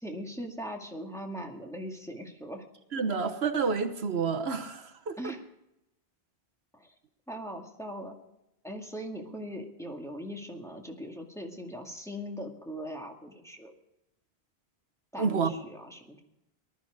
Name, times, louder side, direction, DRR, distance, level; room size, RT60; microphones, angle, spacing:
voice 1, 0.0-2.7 5.2-5.4 6.7-6.9 7.3-8.2 8.6-13.7 15.1-16.2, equal, 5° left, 1 dB, 2.0 m, -40 dB
voice 2, 2.9-5.3 15.2-15.5, right 5 dB, 75° right, 6 dB, 1.4 m, -29 dB
19.0 x 12.5 x 4.9 m, 0.86 s
omnidirectional pair, 1.1 m